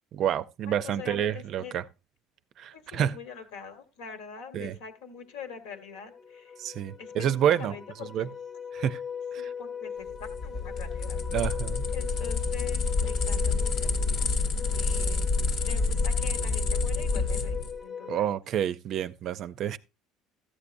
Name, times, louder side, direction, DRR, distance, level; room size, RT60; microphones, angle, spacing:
voice 1, 0.1-1.8 2.6-3.2 4.5-4.8 6.6-7.7 8.1-8.3 8.7-9.0 9.3-9.5 11.3-11.8 18.1-19.8, right 10 dB, 40° right, 0.4 m, -28 dB
voice 2, 0.7-1.7 2.7-6.6 7.0-8.3 9.4-11.2 11.9-14.2 14.7-15.3 15.6-18.3, left 7 dB, 85° left, 1.5 m, -44 dB
sound 1, 5.4-5.5 5.8-18.3, left 7 dB, 20° left, 0.5 m, -39 dB
sound 2, 10.1-17.7, left 4 dB, 45° left, 1.0 m, -28 dB
14.0 x 8.3 x 2.6 m
cardioid pair, 165°, 0 cm